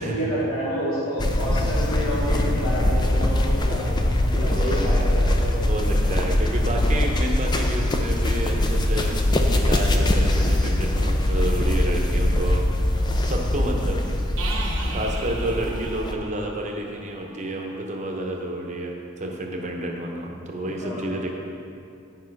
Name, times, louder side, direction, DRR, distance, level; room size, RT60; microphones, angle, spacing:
voice 1, 0.0-5.6 5.9-6.2 20.6-21.2, equal, 65° left, -7 dB, 1.6 m, -29 dB
sound 1, 1.2-16.1, left 1 dB, 20° left, 0.4 m, -22 dB
voice 2, 4.4-4.9 5.7-12.9 13.2-14.0 14.9-21.3, right 1 dB, 30° right, 1 dB, 0.9 m, -30 dB
sound 2, 14.4-18.0, right 3 dB, 70° right, 1.2 m, -37 dB
9.8 x 5.5 x 4.7 m, 2.6 s
head